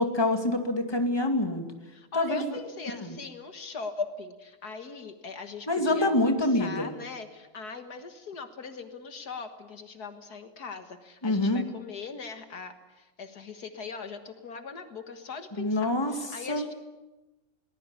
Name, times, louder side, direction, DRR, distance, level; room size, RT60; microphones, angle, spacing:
voice 1, 0.0-1.7 2.1-2.6 3.0-3.2 5.7-6.9 11.2-11.6 15.6-16.1 16.5-16.7, left 2 dB, 15° left, 5 dB, 2.3 m, -26 dB
voice 2, 1.9-16.7, left 4 dB, 65° left, 8 dB, 2.0 m, -40 dB
22.0 x 19.5 x 9.8 m, 1.1 s
omnidirectional pair, 1.8 m